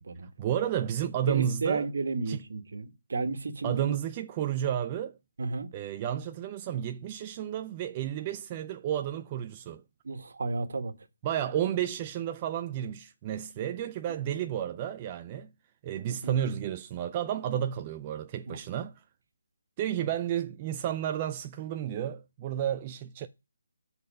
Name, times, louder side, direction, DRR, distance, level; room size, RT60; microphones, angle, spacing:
voice 1, 0.4-1.8 2.3-2.4 3.6-5.2 5.7-9.8 11.2-15.5 15.8-18.9 19.8-23.3, right 10 dB, 20° right, 0.3 m, -32 dB
voice 2, 1.3-4.0 5.4-5.7 10.0-10.9 16.1-16.4 18.5-18.6, right 3 dB, 60° right, 1.5 m, -33 dB
7.5 x 4.0 x 6.5 m
hypercardioid pair, 165°, 0 cm